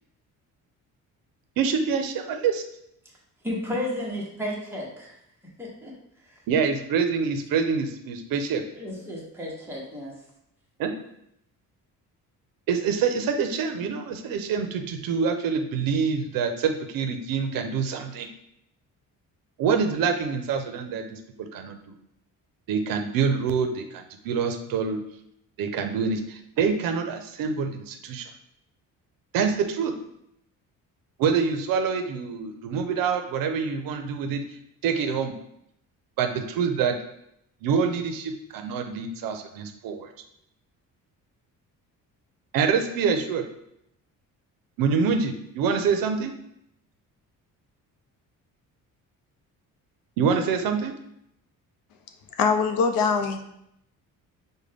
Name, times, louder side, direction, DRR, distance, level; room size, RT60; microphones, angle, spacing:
voice 1, 1.6-2.6 6.5-8.6 10.8-10.9 12.7-18.3 19.6-21.9 22.7-25.0 25.6-28.3 29.3-29.9 31.2-34.4 34.8-35.3 36.2-37.0 37.6-40.1 42.5-43.4 44.8-46.3 50.2-50.9, right 6 dB, 75° right, 6 dB, 0.6 m, -26 dB
voice 2, 3.4-5.2 5.6-5.9 6.2-6.4 8.7-10.1, left 1 dB, 5° right, -4 dB, 0.9 m, -33 dB
voice 3, 52.4-53.4, left 5 dB, 75° left, 6 dB, 0.6 m, -22 dB
5.1 x 2.2 x 3.3 m, 0.76 s
cardioid pair, 165°, 34 cm